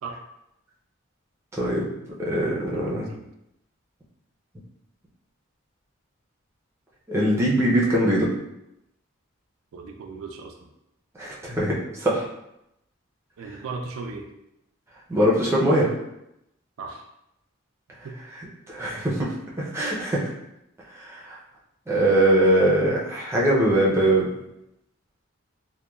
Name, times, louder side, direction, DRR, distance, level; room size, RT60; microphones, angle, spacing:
voice 1, 1.6-1.9 2.2-3.1 7.1-8.3 11.2-12.2 15.1-15.9 18.4-19.3 19.6-20.3 21.0-21.4 21.9-24.4, right 1 dB, 15° right, -5 dB, 0.4 m, -22 dB
voice 2, 2.7-3.2 9.7-10.7 13.4-14.3 16.8-17.0 18.0-18.2, right 4 dB, 90° right, 3 dB, 0.3 m, -37 dB
3.0 x 2.1 x 2.2 m, 0.85 s
head